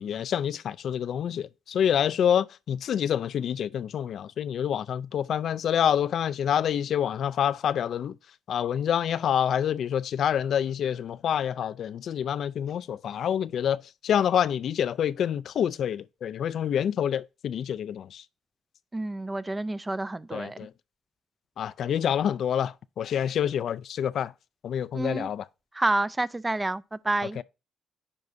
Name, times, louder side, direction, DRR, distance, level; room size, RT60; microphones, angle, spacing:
voice 1, 0.0-8.2 8.5-13.8 14.0-18.2 20.3-20.7 21.6-24.3 24.6-25.4 27.4-27.5, left 9 dB, 65° left, 0.3 m, -27 dB
voice 2, 18.9-20.6 24.9-25.3 25.7-27.4, right 2 dB, 15° right, 0.4 m, -29 dB
9.8 x 4.6 x 2.6 m
cardioid pair, 90°, 0 cm